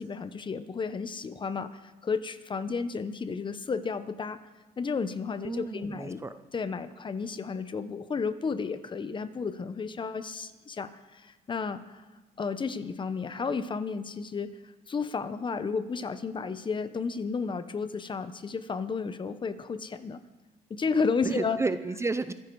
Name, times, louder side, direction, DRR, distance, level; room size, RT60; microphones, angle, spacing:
voice 1, 0.0-4.4 4.8-6.2 6.5-12.0 12.4-20.2 20.7-21.6, left 5 dB, 30° left, 12 dB, 1.0 m, -32 dB
voice 2, 5.4-6.3 21.2-22.3, right 3 dB, 15° right, 11 dB, 0.6 m, -31 dB
24.5 x 10.5 x 4.7 m, 1.2 s
cardioid pair, 110°, 17 cm